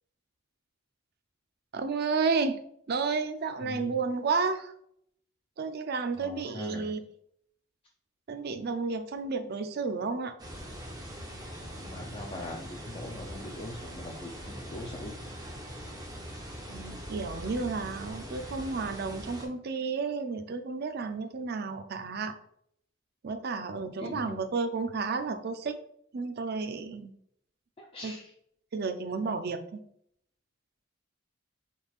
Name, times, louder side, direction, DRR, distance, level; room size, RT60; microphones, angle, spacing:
voice 1, 1.7-2.6 2.9-4.7 5.6-7.0 8.3-10.3 16.7-22.4 23.2-25.8 26.1-27.1 28.0-28.1 28.7-29.8, right 4 dB, 45° right, 9 dB, 0.4 m, -32 dB
voice 2, 3.6-4.0 6.2-6.9 11.8-15.2 24.0-24.4 27.8-28.3, left 1 dB, 25° left, 0 dB, 0.4 m, -42 dB
sound 1, 10.4-19.5, equal, 20° right, 0.7 m, -42 dB
5.2 x 3.2 x 2.4 m, 0.69 s
head